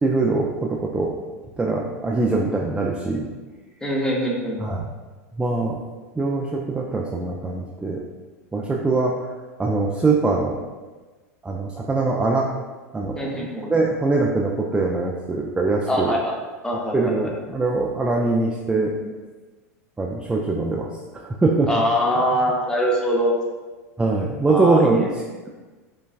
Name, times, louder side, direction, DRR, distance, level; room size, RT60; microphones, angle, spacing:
voice 1, 0.0-1.2 1.6-3.3 4.6-4.9 5.3-5.8 6.2-8.0 8.5-9.2 9.6-10.6 11.4-12.5 12.9-16.1 16.9-19.1 20.0-21.8 24.0-25.1, right 3 dB, 10° right, -1 dB, 0.3 m, -22 dB
voice 2, 3.8-4.6 13.2-13.7 15.9-16.3 16.6-17.3 21.7-23.3 24.5-25.1, equal, 10° left, -1 dB, 0.8 m, -23 dB
5.1 x 2.3 x 2.4 m, 1.3 s
hypercardioid pair, 100°, 8 cm